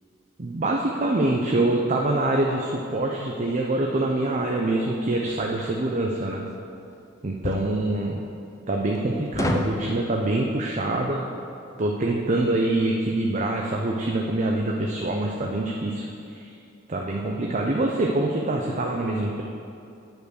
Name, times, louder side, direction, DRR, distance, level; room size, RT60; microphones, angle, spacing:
voice 1, 0.4-6.5 7.2-8.2 8.7-11.2 11.8-16.5 16.9-19.4, right 2 dB, 35° right, 0 dB, 0.6 m, -25 dB
sound 1, 5.3-5.5 7.4-7.7 9.3-9.8, left 1 dB, 15° left, 0.5 m, -26 dB
9.2 x 5.3 x 6.4 m, 2.6 s
head